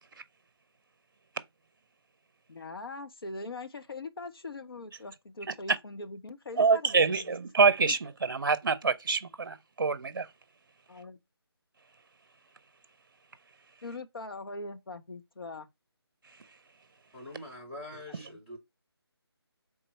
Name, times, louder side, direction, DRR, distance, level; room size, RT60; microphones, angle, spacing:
voice 1, 2.5-6.9 7.8-7.9 10.9-11.2 13.8-15.7, left 3 dB, 60° left, 0.8 m, -41 dB
voice 2, 5.5-5.8 6.6-10.3 16.3-16.4, right 4 dB, 50° right, 0.6 m, -26 dB
voice 3, 17.1-18.6, left 1 dB, 20° left, 2.2 m, -44 dB
4.0 x 3.6 x 3.2 m
figure-of-eight pair, 170°, 14 cm